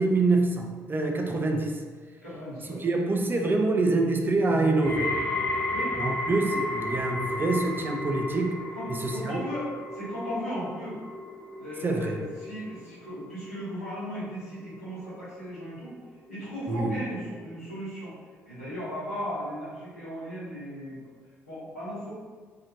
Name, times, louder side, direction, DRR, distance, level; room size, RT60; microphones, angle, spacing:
voice 1, 0.0-1.8 2.8-5.2 6.0-8.6 9.0-9.4 11.8-12.2 16.7-17.0, right 2 dB, 25° right, 2 dB, 0.4 m, -25 dB
voice 2, 2.2-2.8 5.7-5.9 8.7-11.0 11.6-16.0 16.3-18.1 18.4-21.0 21.5-22.1, equal, 90° left, -13 dB, 1.1 m, -36 dB
sound 1, 4.8-15.9 16.2-16.8 17.5-17.6, left 1 dB, 15° left, 1.1 m, -34 dB
2.7 x 2.4 x 2.8 m, 1.5 s
figure-of-eight pair, 45°, 8 cm